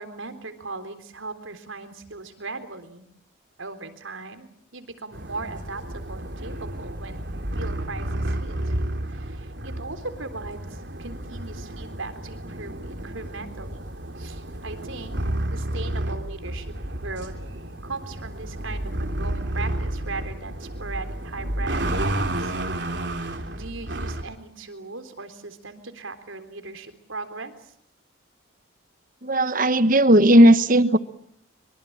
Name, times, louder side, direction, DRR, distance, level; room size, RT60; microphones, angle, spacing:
voice 1, 0.0-3.0 3.6-13.8 14.2-15.2 15.5-17.3 17.8-23.0 23.5-27.7, right 3 dB, 80° right, 9 dB, 3.8 m, -38 dB
sound 1, 5.1-24.2, right 1 dB, 60° right, 3.3 m, -31 dB
voice 2, 29.2-31.0, right 1 dB, 40° right, 13 dB, 1.3 m, -16 dB
25.0 x 24.5 x 8.8 m, 0.67 s
head